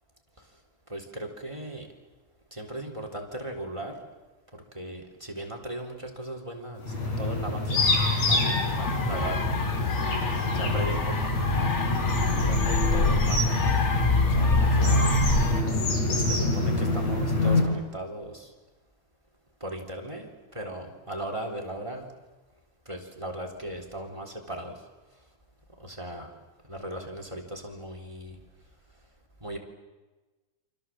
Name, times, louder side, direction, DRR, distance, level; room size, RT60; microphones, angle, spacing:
voice 1, 0.9-1.8 2.6-3.9 4.8-5.0 5.4-6.8 7.2-7.8 8.3-9.4 10.7-11.0 11.4-11.7 12.4-13.7 14.4-14.5 14.8-15.1 16.3-18.3 19.6-20.3 20.6-22.0 22.9-24.7 26.0-26.3 26.7-28.3 29.4-29.6, right 1 dB, 10° right, 4 dB, 3.6 m, -37 dB
sound 1, 6.8-17.6, left 2 dB, 65° left, 7.1 m, -26 dB
sound 2, 7.8-15.6, left 3 dB, 30° left, 1.7 m, -26 dB
28.5 x 26.5 x 7.7 m, 1.2 s
omnidirectional pair, 3.4 m